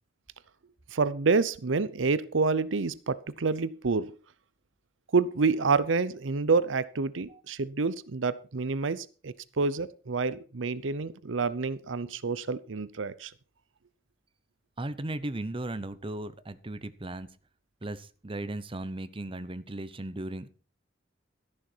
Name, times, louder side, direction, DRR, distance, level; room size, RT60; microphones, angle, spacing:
voice 1, 0.9-4.1 5.1-13.3, right 4 dB, 85° right, 0.7 m, -28 dB
voice 2, 14.8-17.3 17.8-20.5, right 1 dB, 30° right, 0.8 m, -36 dB
13.0 x 11.0 x 4.5 m
head